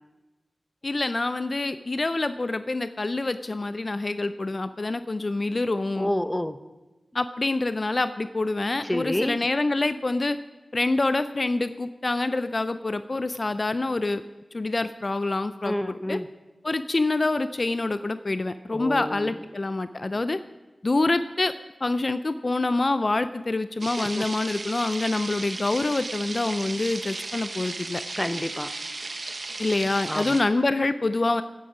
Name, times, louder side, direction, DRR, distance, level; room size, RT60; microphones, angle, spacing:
voice 1, 0.8-6.1 7.1-10.4 10.7-14.2 14.5-16.2 16.6-20.4 20.8-21.5 21.8-28.0 29.6-31.4, left 2 dB, 50° left, 12 dB, 0.4 m, -26 dB
voice 2, 6.0-6.6 8.8-9.4 15.6-16.3 18.7-19.4 24.0-24.3 28.2-28.8 30.1-30.4, left 1 dB, 15° left, 12 dB, 0.7 m, -29 dB
sound 1, 23.8-30.4, right 3 dB, 60° right, 0.8 m, -35 dB
16.5 x 9.5 x 5.0 m, 1.1 s
cardioid pair, 50°, 0 cm